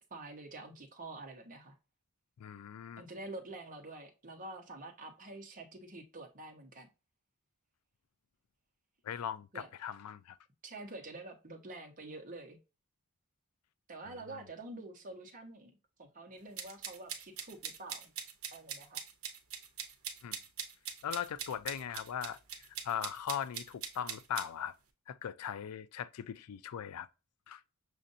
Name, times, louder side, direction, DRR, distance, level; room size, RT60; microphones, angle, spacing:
voice 1, 0.1-1.7 3.0-6.9 9.5-9.7 10.6-12.6 13.9-15.7 16.0-18.1 18.5-19.0, right 2 dB, 35° right, 0.9 m, -47 dB
voice 2, 2.4-3.0 9.0-10.4 20.2-20.4 21.0-24.7 25.1-27.1 27.5-27.6, left 9 dB, 90° left, 0.4 m, -39 dB
sound 1, 16.6-24.5, right 8 dB, 75° right, 0.8 m, -42 dB
6.3 x 2.5 x 2.6 m
head